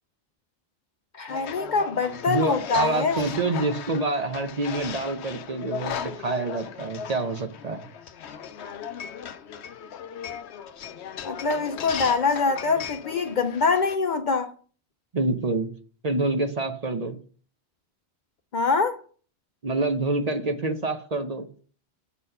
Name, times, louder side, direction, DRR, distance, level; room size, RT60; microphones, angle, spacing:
voice 1, 1.2-3.2 11.2-14.5 18.5-19.0, left 4 dB, 55° left, 0.6 m, -24 dB
sound 1, 1.3-13.9, left 8 dB, 85° left, 0.9 m, -37 dB
voice 2, 2.3-7.9 15.1-15.7 16.0-17.2 19.6-21.5, right 2 dB, 40° right, 0.8 m, -27 dB
7.6 x 4.2 x 5.4 m
omnidirectional pair, 1.1 m